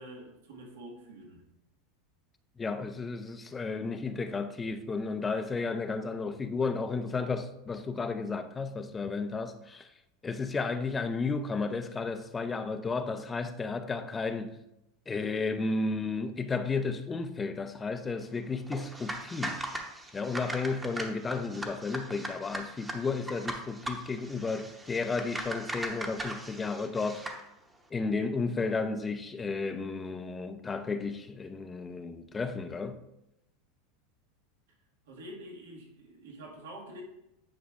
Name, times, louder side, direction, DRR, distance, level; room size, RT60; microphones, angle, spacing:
voice 1, 0.0-1.4 35.1-37.0, right 1 dB, 85° right, 1.7 m, -46 dB
voice 2, 2.6-9.9 10.2-14.6 15.1-19.6 20.1-27.2 27.9-33.0, left 4 dB, 20° left, 0.5 m, -33 dB
sound 1, 18.7-27.4, right 1 dB, 10° right, 0.9 m, -39 dB
9.8 x 4.8 x 2.4 m
supercardioid pair, 115°, 0 cm